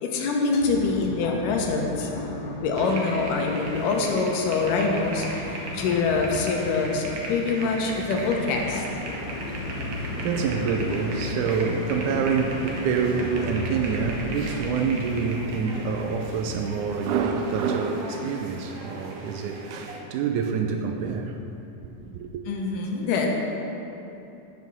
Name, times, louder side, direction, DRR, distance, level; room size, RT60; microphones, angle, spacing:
voice 1, 0.0-9.2 10.2-10.3 22.5-23.3, left 4 dB, 80° left, 2.5 m, -25 dB
sound 1, 0.6-17.6, left 1 dB, 65° left, 3.3 m, -36 dB
sound 2, 2.8-20.0, right 2 dB, 65° right, 1.6 m, -37 dB
voice 2, 9.2-21.4 22.0-22.4, right 5 dB, 80° right, 1.9 m, -27 dB
8.1 x 7.0 x 6.0 m
omnidirectional pair, 3.8 m